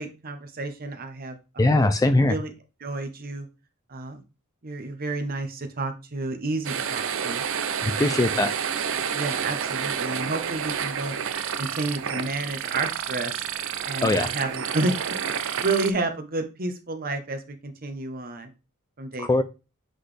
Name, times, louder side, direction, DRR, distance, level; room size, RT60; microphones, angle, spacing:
voice 1, 0.0-1.6 2.3-2.5 2.8-3.5 3.9-4.2 4.6-7.4 8.0-8.4 9.1-11.2 11.6-13.4 13.9-14.9 15.2-18.5 19.0-19.3, right 2 dB, 40° right, 8 dB, 0.9 m, -30 dB
voice 2, 1.6-2.4 7.8-8.5 14.0-14.3 19.2-19.4, left 2 dB, 15° left, 10 dB, 0.3 m, -21 dB
sound 1, 6.6-15.9, right 7 dB, 60° right, 0.5 m, -29 dB
7.7 x 4.0 x 3.3 m, 0.29 s
head